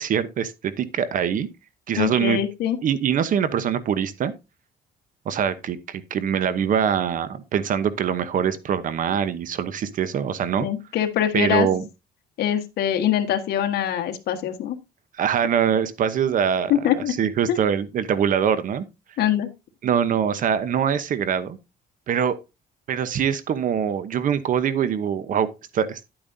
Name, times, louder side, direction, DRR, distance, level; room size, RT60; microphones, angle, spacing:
voice 1, 0.0-1.5 1.9-2.4 2.8-4.3 5.3-10.7 11.3-11.9 15.2-16.7 17.1-18.9 19.8-21.6 22.1-22.4 22.9-25.5 25.7-26.0, right 8 dB, 55° right, 0.9 m, -23 dB
voice 2, 2.0-2.8 10.6-11.7 12.4-14.8 16.7-17.1 17.5-17.6 19.2-19.5, left 10 dB, 70° left, 1.5 m, -23 dB
10.5 x 8.7 x 2.7 m
cardioid pair, 110°, 17 cm